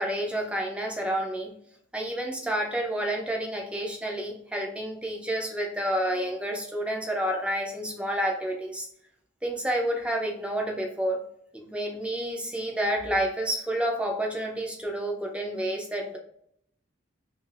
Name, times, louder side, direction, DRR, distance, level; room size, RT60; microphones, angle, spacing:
voice 1, 0.0-1.5 1.9-8.9 9.4-11.2 11.5-16.2, right 1 dB, 5° right, 1 dB, 0.4 m, -29 dB
2.7 x 2.4 x 3.1 m, 0.70 s
head